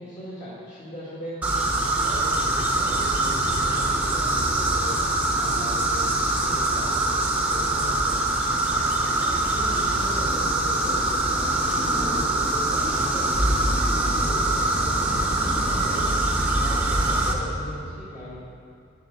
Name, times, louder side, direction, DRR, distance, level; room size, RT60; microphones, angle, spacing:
voice 1, 0.0-1.4 1.8-5.0 5.3-8.2 8.7-13.6 14.0-16.1 16.6-18.4, equal, 35° left, -9 dB, 2.0 m, -39 dB
sound 1, 1.4-17.3, right 2 dB, 5° right, 0.9 m, -23 dB
9.3 x 7.7 x 6.8 m, 2.4 s
head